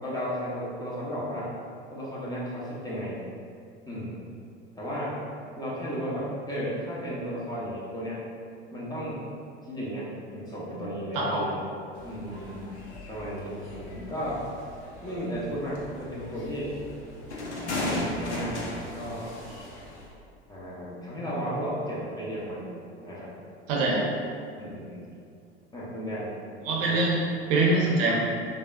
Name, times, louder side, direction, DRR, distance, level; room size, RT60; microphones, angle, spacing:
voice 1, 0.0-1.6 1.9-3.2 3.9-4.2 4.7-5.2 5.6-8.3 8.7-9.3 9.6-11.6 12.0-12.7 13.1-14.4 15.0-16.8 17.8-19.3 20.5-22.7 23.0-23.3 24.6-25.1 25.7-26.4 26.8-27.0, equal, 10° left, -7 dB, 0.6 m, -34 dB
sound 1, 11.9-20.1, left 1 dB, 80° left, 0.6 m, -37 dB
voice 2, 23.7-24.1 26.6-27.2 27.5-28.1, right 2 dB, 55° right, -3 dB, 0.6 m, -23 dB
3.3 x 2.2 x 2.4 m, 2.3 s
figure-of-eight pair, 75°, 33 cm